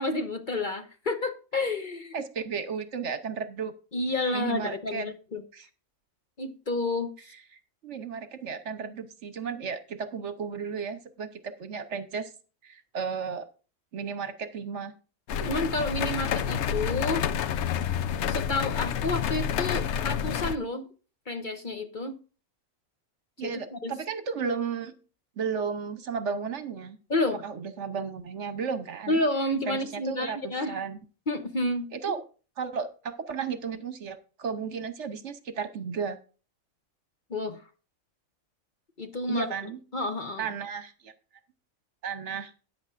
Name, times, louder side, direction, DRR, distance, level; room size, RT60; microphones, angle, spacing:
voice 1, 0.0-2.2 3.9-5.4 6.4-7.1 15.5-17.2 18.3-20.9 21.3-22.2 23.4-23.9 27.1-27.4 29.1-30.8 31.3-32.2 37.3-37.6 39.0-39.5 39.9-40.5, left 2 dB, 40° left, 1.0 m, -30 dB
voice 2, 2.1-3.7 4.3-5.1 5.5-5.7 7.5-12.3 12.6-13.5 13.9-14.9 23.4-24.9 25.4-27.0 27.4-29.2 29.6-31.0 31.9-32.2 32.6-36.2 39.3-39.8 40.4-41.1 42.0-42.5, right 6 dB, 60° right, 1.2 m, -34 dB
sound 1, 15.3-20.6, left 8 dB, 65° left, 0.8 m, -29 dB
13.5 x 9.6 x 2.6 m
omnidirectional pair, 1.4 m